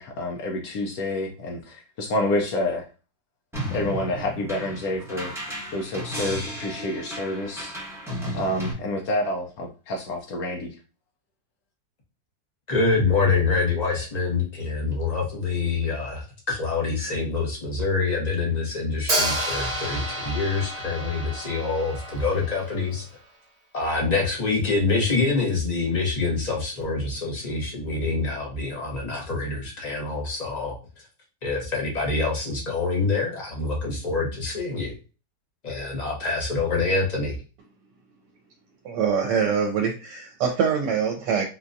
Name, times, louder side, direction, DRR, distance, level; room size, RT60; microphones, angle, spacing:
voice 1, 0.0-2.9 3.7-5.3 5.7-7.7 8.3-10.8, left 1 dB, 70° left, 2 dB, 0.9 m, -28 dB
sound 1, 3.5-8.7, equal, ahead, 0.8 m, -34 dB
voice 2, 12.7-23.0 23.7-30.7 31.4-34.9 35.6-37.3, left 3 dB, 30° left, -2 dB, 0.9 m, -26 dB
Hi-hat, 19.1-23.0, right 1 dB, 50° right, 0.4 m, -30 dB
voice 3, 38.8-41.4, right 6 dB, 85° right, 1 dB, 1.2 m, -24 dB
4.0 x 2.3 x 2.5 m, 0.33 s
omnidirectional pair, 1.8 m